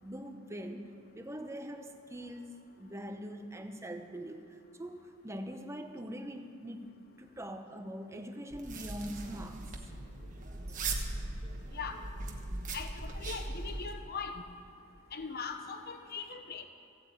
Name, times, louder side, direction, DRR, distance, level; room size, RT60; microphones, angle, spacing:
voice 1, 0.0-6.9 7.2-9.6, equal, 15° right, 6 dB, 0.8 m, -43 dB
sound 1, 8.5-13.9, right 2 dB, 35° right, 1.2 m, -39 dB
voice 2, 12.7-14.4 15.1-16.7, left 5 dB, 45° left, 7 dB, 0.9 m, -40 dB
15.0 x 8.3 x 8.4 m, 2.7 s
head